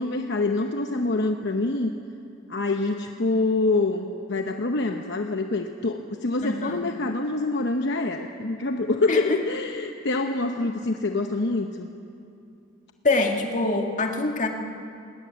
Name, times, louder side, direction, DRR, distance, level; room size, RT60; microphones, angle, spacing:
voice 1, 0.0-1.9 2.5-11.9, left 2 dB, 60° left, 5 dB, 0.9 m, -26 dB
voice 2, 6.4-6.9 9.1-9.2 13.0-14.5, left 2 dB, 40° left, 3 dB, 2.0 m, -24 dB
20.0 x 18.5 x 8.8 m, 2.6 s
head